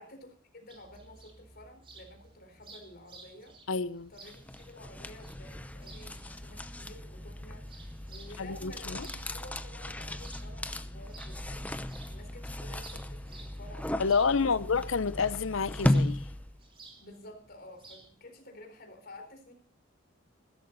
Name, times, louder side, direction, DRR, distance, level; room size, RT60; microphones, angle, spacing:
voice 1, 0.0-3.6 4.1-14.6 17.0-19.5, left 1 dB, 50° left, 4.3 m, -51 dB
sound 1, 0.7-18.1, right 3 dB, 25° right, 3.4 m, -56 dB
voice 2, 3.7-4.1 8.4-9.1 14.0-16.2, left 5 dB, 75° left, 0.7 m, -29 dB
sound 2, 4.2-16.6, left 1 dB, 5° left, 0.7 m, -36 dB
16.0 x 13.5 x 4.1 m
head